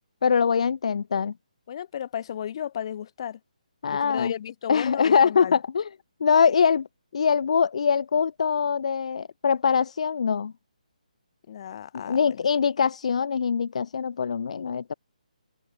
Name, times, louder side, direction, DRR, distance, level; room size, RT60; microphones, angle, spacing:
voice 1, 0.2-1.3 3.8-4.3 4.7-5.9 6.2-6.9 7.1-10.5 11.9-14.9, left 6 dB, 55° left, 3.9 m, -23 dB
voice 2, 1.7-3.4 3.9-5.6 11.5-12.4, left 9 dB, 40° left, 6.4 m, -34 dB
open air
hypercardioid pair, 160°, 4 cm